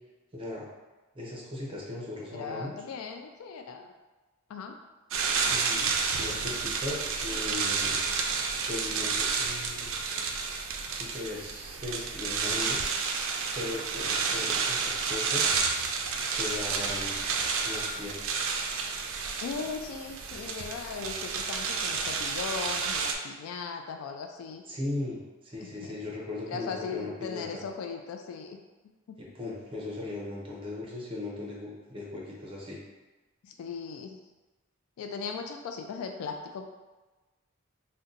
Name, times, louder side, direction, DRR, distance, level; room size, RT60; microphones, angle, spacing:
voice 1, 0.3-0.7 1.1-2.8 5.3-8.0 8.7-9.9 10.9-12.8 13.5-15.5 16.3-17.2 17.6-18.6 24.7-27.6 29.2-32.8, left 2 dB, 25° right, -4 dB, 0.7 m, -38 dB
voice 2, 2.3-3.9 4.5-4.8 19.4-24.6 25.6-26.0 26.5-28.6 33.4-34.2 35.0-36.7, left 5 dB, 85° left, 5 dB, 0.3 m, -38 dB
sound 1, 5.1-23.1, right 5 dB, 70° right, 0.4 m, -30 dB
2.7 x 2.2 x 3.7 m, 1.2 s
head